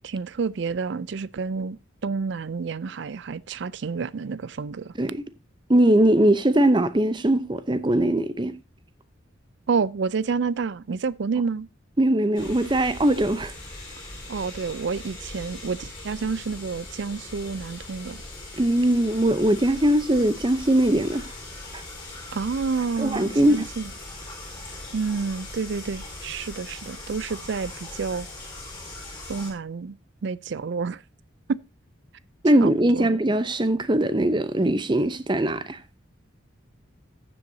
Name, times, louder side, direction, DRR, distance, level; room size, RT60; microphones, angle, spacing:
voice 1, 0.0-4.9 9.7-11.7 14.3-18.2 22.3-23.9 24.9-28.3 29.3-30.0 30.2-31.0 31.5-31.6 32.6-33.1, right 5 dB, 60° right, 0.4 m, -29 dB
voice 2, 5.7-8.5 12.0-13.5 18.6-21.2 21.7-21.8 23.0-23.6 32.4-35.8, right 1 dB, 25° right, 0.7 m, -21 dB
sound 1, 12.3-29.5, left 2 dB, 25° left, 4.1 m, -40 dB
14.5 x 7.7 x 2.7 m
head